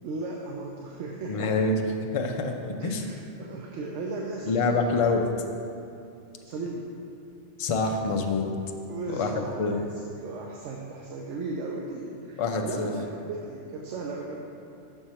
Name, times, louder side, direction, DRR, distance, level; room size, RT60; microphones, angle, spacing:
voice 1, 0.0-1.6 2.8-4.8 6.4-6.9 8.9-9.9 10.2-14.5, right 3 dB, 80° right, -1 dB, 0.9 m, -36 dB
voice 2, 1.2-3.0 4.5-5.3 7.6-8.5 9.1-9.3 9.6-9.8 12.4-12.9, left 3 dB, 50° left, 3 dB, 0.3 m, -26 dB
6.2 x 4.5 x 5.6 m, 2.5 s
omnidirectional pair, 1.2 m